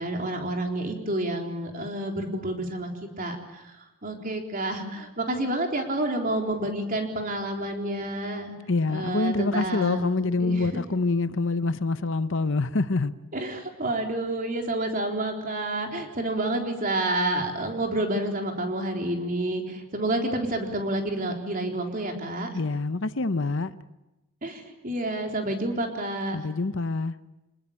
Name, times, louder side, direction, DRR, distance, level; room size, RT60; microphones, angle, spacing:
voice 1, 0.0-2.9 3.2-3.8 4.0-8.5 8.9-10.8 13.3-22.5 24.4-26.5, right 1 dB, 40° right, 3.9 m, -29 dB
voice 2, 8.7-13.1 22.5-23.8 26.3-27.2, left 3 dB, 55° left, 0.8 m, -26 dB
26.5 x 20.0 x 8.8 m
head